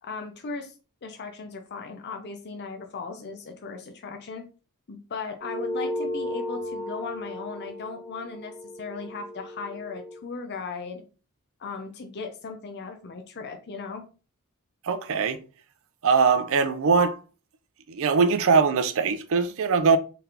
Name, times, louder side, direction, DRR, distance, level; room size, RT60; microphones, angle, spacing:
voice 1, 0.0-0.7 1.0-4.4 4.9-11.0 11.6-14.0, left 4 dB, 50° left, 0.5 m, -37 dB
sound 1, 5.4-10.2, left 1 dB, 20° right, 1.7 m, -34 dB
voice 2, 14.8-15.4 16.0-17.2 17.9-20.0, right 5 dB, 65° right, 0.5 m, -21 dB
3.9 x 3.4 x 2.7 m
head